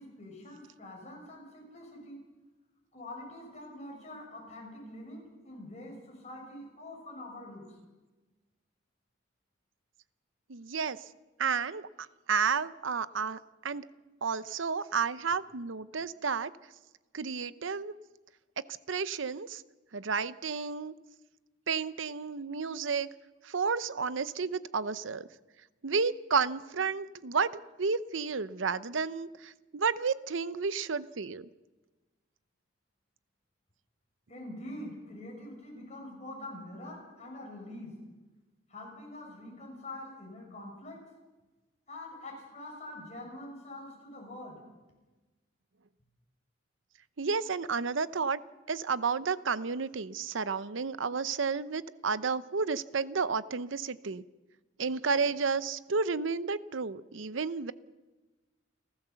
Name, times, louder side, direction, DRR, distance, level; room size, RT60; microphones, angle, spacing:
voice 1, 0.0-2.2 2.9-7.7 34.3-38.0 38.7-41.0 41.9-44.6, left 1 dB, 35° left, 0 dB, 6.2 m, -45 dB
voice 2, 10.5-11.0 11.4-11.9 12.3-13.4 13.6-13.9 14.2-16.5 17.1-17.9 18.9-19.6 19.9-20.9 21.7-23.1 23.4-25.3 25.8-31.5 47.2-48.4 48.7-54.2 54.8-57.7, right 5 dB, 80° right, 15 dB, 0.7 m, -31 dB
29.5 x 13.0 x 7.0 m, 1.2 s
head